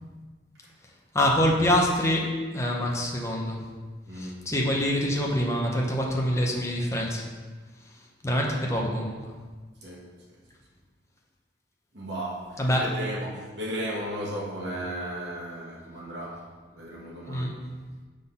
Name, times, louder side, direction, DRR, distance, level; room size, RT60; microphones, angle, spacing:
voice 1, 1.1-3.6 4.2-7.2 8.2-9.3 12.6-12.8 17.3-17.5, left 1 dB, 15° left, -2 dB, 0.8 m, -25 dB
voice 2, 4.1-4.4 9.8-10.1 11.9-17.6, equal, 70° right, -5 dB, 1.4 m, -35 dB
5.8 x 3.9 x 5.7 m, 1.4 s
head